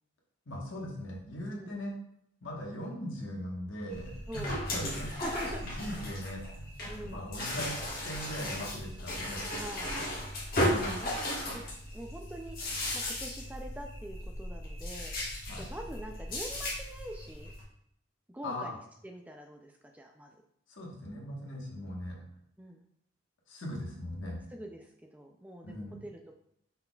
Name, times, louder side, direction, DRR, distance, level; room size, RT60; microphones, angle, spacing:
voice 1, 0.5-1.9 2.4-5.1 5.6-9.4 10.6-11.0 15.5-15.7 18.4-18.7 20.7-22.2 23.5-24.4 25.6-26.0, left 1 dB, 75° left, -2 dB, 1.2 m, -40 dB
sound 1, 3.9-17.6, left 1 dB, 45° left, 1.4 m, -36 dB
voice 2, 4.3-4.6 5.2-6.0 6.9-7.2 9.5-9.9 11.0-11.2 11.5-11.6 11.9-12.6 12.9-15.1 15.6-17.5 18.3-20.4 22.6-22.8 24.5-26.3, right 1 dB, 10° right, 3 dB, 0.3 m, -44 dB
5.5 x 4.1 x 2.3 m, 0.74 s
head